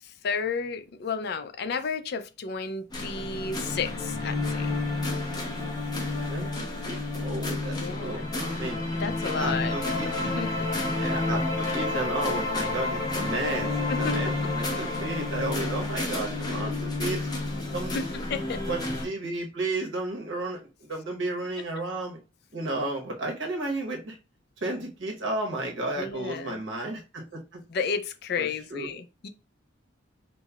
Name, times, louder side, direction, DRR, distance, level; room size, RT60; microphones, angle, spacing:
voice 1, 0.0-4.7 7.7-9.7 10.0-10.7 14.0-14.7 17.9-18.0 18.3-18.6 26.0-26.6 27.7-29.3, left 5 dB, 55° left, 0.4 m, -33 dB
sound 1, 2.9-19.1, left 2 dB, 20° left, 0.7 m, -30 dB
voice 2, 6.3-8.8 9.4-10.1 10.9-13.7 14.0-17.3 17.7-17.9 18.7-22.2 22.5-24.2 24.6-27.6 28.4-28.9, right 2 dB, 80° right, 1.0 m, -33 dB
5.3 x 2.1 x 2.3 m
head